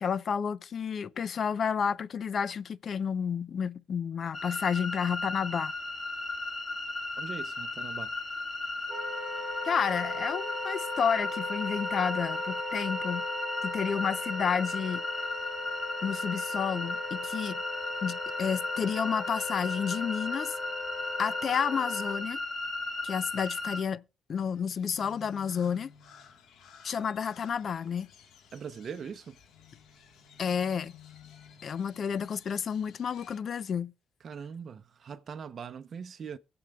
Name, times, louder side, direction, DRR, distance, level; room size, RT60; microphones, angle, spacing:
voice 1, 0.0-5.7 9.6-13.2 13.6-15.0 16.0-17.6 18.0-20.5 21.2-22.4 23.0-24.0 24.3-25.9 26.8-28.1 30.4-30.9 31.6-33.9, left 7 dB, 55° left, 0.6 m, -31 dB
sound 1, 4.3-23.8, left 3 dB, 35° left, 1.7 m, -35 dB
voice 2, 7.2-8.1 28.5-29.4 34.2-36.4, right 6 dB, 50° right, 0.7 m, -41 dB
Wind instrument woodwind instrument, 8.9-22.2, left 1 dB, 25° right, 2.1 m, -38 dB
Crow, 24.3-33.4, left 8 dB, 75° left, 1.5 m, -55 dB
23.0 x 7.9 x 2.3 m
cardioid pair, 90°, 0 cm